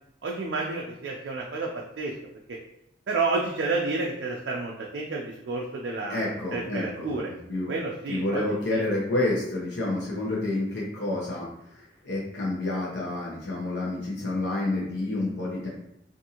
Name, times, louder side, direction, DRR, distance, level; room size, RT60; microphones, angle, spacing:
voice 1, 0.2-2.1 3.1-7.3 7.7-8.4 8.7-8.8, right 3 dB, 75° right, -1 dB, 0.4 m, -30 dB
voice 2, 6.1-7.2 7.5-7.7 8.1-11.5 11.7-15.7, left 2 dB, 70° left, -5 dB, 0.7 m, -29 dB
2.6 x 2.5 x 2.8 m, 0.78 s
head